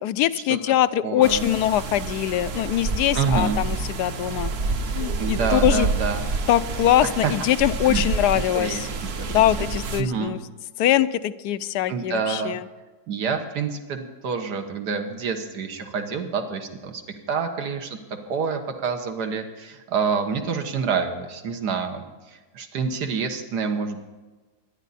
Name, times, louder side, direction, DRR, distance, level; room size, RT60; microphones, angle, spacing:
voice 1, 0.0-4.5 4.9-5.9 6.5-8.9 9.3-10.4 10.8-12.6, left 12 dB, 85° left, 14 dB, 1.2 m, -22 dB
voice 2, 1.0-1.4 3.1-3.6 5.2-6.2 7.0-7.3 7.9-8.0 8.5-9.4 10.0-10.3 11.9-12.6 13.1-17.0 17.3-18.0 18.3-24.0, right 5 dB, 85° right, 6 dB, 1.9 m, -27 dB
sound 1, 1.2-10.0, right 3 dB, 50° right, 0.9 m, -28 dB
23.5 x 10.5 x 4.2 m, 1.3 s
omnidirectional pair, 1.7 m